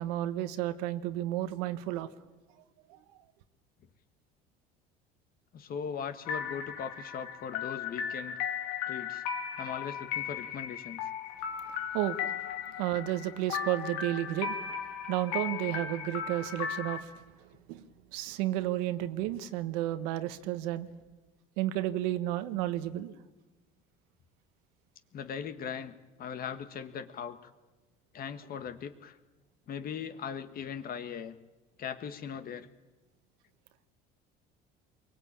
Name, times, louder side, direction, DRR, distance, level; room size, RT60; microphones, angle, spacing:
voice 1, 0.0-2.1 11.9-12.3 12.8-14.8 15.1-17.1 17.7-17.8 18.1-20.9 21.6-23.1, right 14 dB, 85° right, 11 dB, 1.3 m, -32 dB
voice 2, 5.5-8.4 8.9-9.2 9.6-11.0 25.1-27.5 28.1-29.2 29.7-31.3 31.8-32.7, left 7 dB, 45° left, 10 dB, 1.6 m, -39 dB
sound 1, 6.3-17.0, left 8 dB, 90° left, 2.4 m, -36 dB
23.0 x 19.0 x 8.8 m, 1.2 s
supercardioid pair, 105°, 20 cm